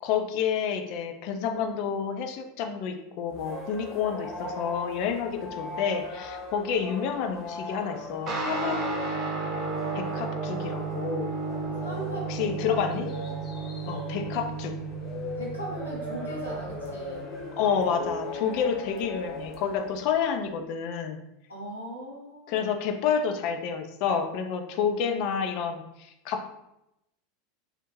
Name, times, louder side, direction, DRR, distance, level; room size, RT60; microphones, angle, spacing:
voice 1, 0.0-8.8 9.9-11.4 12.3-13.1 13.9-14.8 17.6-21.2 22.5-26.5, left 7 dB, 50° left, 5 dB, 0.3 m, -29 dB
sound 1, 3.3-20.3, left 1 dB, 30° left, 0.7 m, -39 dB
Guitar, 8.3-17.9, right 4 dB, 35° right, 0.8 m, -34 dB
voice 2, 11.8-13.1 15.3-17.3 21.5-22.6, right 1 dB, 80° left, -5 dB, 0.8 m, -38 dB
2.4 x 2.1 x 3.1 m, 0.85 s
figure-of-eight pair, 80°, 0 cm